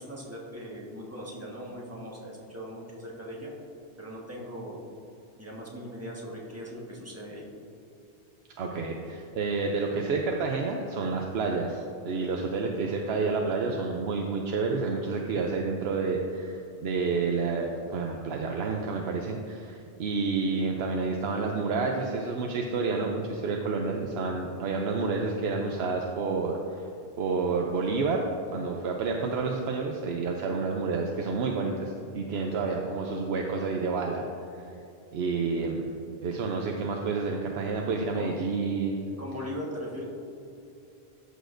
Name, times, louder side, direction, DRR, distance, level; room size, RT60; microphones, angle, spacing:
voice 1, 0.0-3.5 4.0-4.8 5.4-7.4 38.1-38.4 39.2-40.0, equal, 15° right, -4 dB, 1.4 m, -39 dB
voice 2, 8.6-26.8 27.2-28.2 28.5-34.3 34.5-34.6 35.1-35.9 36.2-39.1, right 4 dB, 85° right, 1 dB, 0.9 m, -29 dB
12.5 x 6.5 x 2.6 m, 2.7 s
omnidirectional pair, 1.0 m